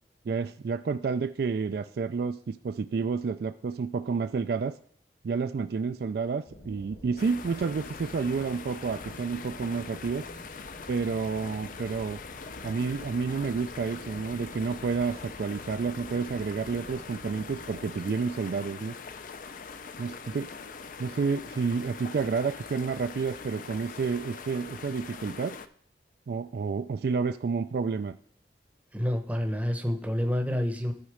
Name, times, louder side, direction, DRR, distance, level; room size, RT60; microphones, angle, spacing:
voice 1, 0.3-4.8 5.2-10.2 10.9-12.2 12.6-18.9 20.0-20.5 21.0-25.6 26.3-28.2, right 5 dB, 60° right, 10 dB, 0.3 m, -30 dB
sound 1, 6.5-17.9, equal, 80° left, 2.3 m, -49 dB
sound 2, 7.2-25.7, left 5 dB, 50° left, 0.4 m, -43 dB
voice 2, 28.9-30.9, equal, 10° right, 5 dB, 0.8 m, -28 dB
12.5 x 4.2 x 5.0 m, 0.63 s
head